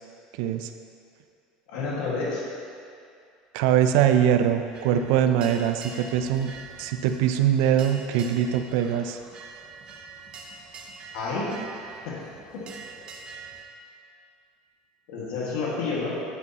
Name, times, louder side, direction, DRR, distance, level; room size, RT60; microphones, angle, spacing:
voice 1, 0.4-0.7 3.5-6.5 6.8-9.2, right 9 dB, 70° right, 8 dB, 0.5 m, -22 dB
voice 2, 1.7-2.4 11.1-11.7 12.0-12.2 12.5-12.6 15.1-16.1, left 3 dB, 70° left, -6 dB, 1.8 m, -29 dB
sound 1, 4.7-13.6, right 4 dB, 35° right, 0.7 m, -44 dB
9.2 x 8.0 x 3.0 m, 2.4 s
cardioid pair, 160°, 3 cm